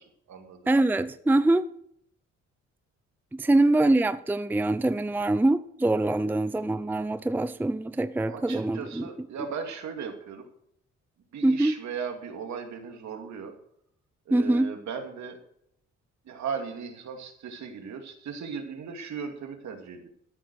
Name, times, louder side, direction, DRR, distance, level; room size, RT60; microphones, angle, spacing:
voice 1, 0.0-0.7 3.4-3.5 8.3-10.5 11.3-13.5 14.3-15.4 16.2-20.1, right 6 dB, 65° right, 2.5 m, -37 dB
voice 2, 0.7-1.6 3.3-9.1 11.4-11.8 14.3-14.7, right 2 dB, 5° right, 0.5 m, -24 dB
13.5 x 7.6 x 6.4 m
cardioid pair, 90°, 30 cm